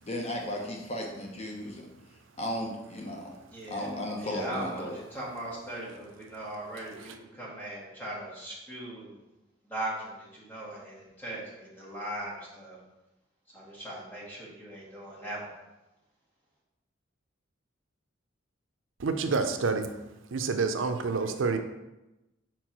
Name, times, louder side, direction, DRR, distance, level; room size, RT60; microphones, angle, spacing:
voice 1, 0.0-1.9 2.4-3.3 3.7-5.0, left 1 dB, 35° left, 0 dB, 0.8 m, -35 dB
voice 2, 3.5-3.9 4.2-9.2 9.6-12.8 13.5-15.5, right 1 dB, 10° left, -5 dB, 1.9 m, -39 dB
voice 3, 19.0-19.9 20.3-21.6, right 4 dB, 70° right, 7 dB, 0.5 m, -28 dB
4.6 x 4.5 x 5.9 m, 0.98 s
head